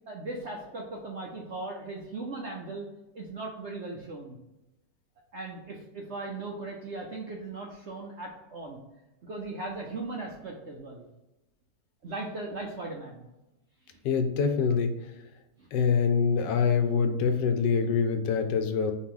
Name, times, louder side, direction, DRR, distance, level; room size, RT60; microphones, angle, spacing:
voice 1, 0.1-2.9 3.1-4.4 5.3-8.8 9.2-11.0 12.0-13.3 15.6-15.7, right 2 dB, 60° right, -1 dB, 0.7 m, -38 dB
voice 2, 14.0-14.9 15.7-18.9, left 6 dB, 85° left, 7 dB, 1.3 m, -25 dB
4.3 x 2.9 x 3.7 m, 0.98 s
omnidirectional pair, 1.9 m